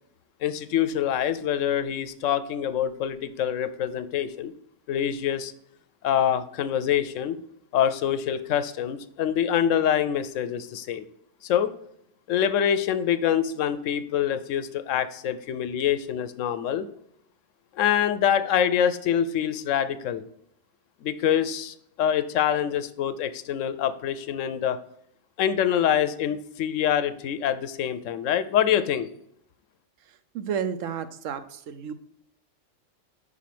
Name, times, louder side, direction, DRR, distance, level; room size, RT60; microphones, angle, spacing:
voice 1, 0.4-4.5 4.9-5.5 6.0-7.4 7.7-11.0 11.4-11.7 12.3-16.9 17.7-20.2 21.0-24.8 25.4-29.1, left 9 dB, 80° left, 12 dB, 1.0 m, -25 dB
voice 2, 30.3-31.9, right 7 dB, 85° right, 11 dB, 1.0 m, -31 dB
5.6 x 4.9 x 5.9 m, 0.74 s
omnidirectional pair, 1.3 m